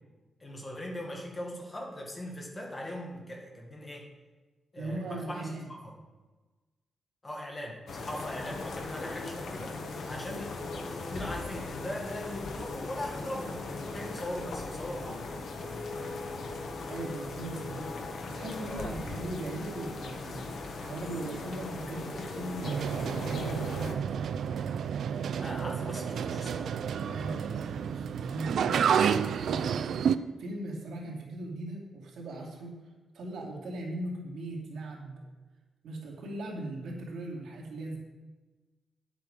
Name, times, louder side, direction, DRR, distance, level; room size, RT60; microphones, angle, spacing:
voice 1, 0.4-4.1 4.7-5.5 5.8-5.9 7.2-9.8 10.1-15.2 18.7-18.9 25.4-26.8, left 1 dB, 20° left, -1 dB, 1.9 m, -40 dB
voice 2, 4.8-5.7 16.9-20.4 20.8-24.5 27.0-32.7 33.1-35.2 35.8-38.0, right 2 dB, 90° right, -2 dB, 2.7 m, -39 dB
sound 1, 7.9-23.9, left 3 dB, 65° left, 1.3 m, -39 dB
sound 2, 22.6-30.2, right 7 dB, 65° right, 0.4 m, -30 dB
10.0 x 8.0 x 5.1 m, 1.2 s
wide cardioid pair, 165°, 0 cm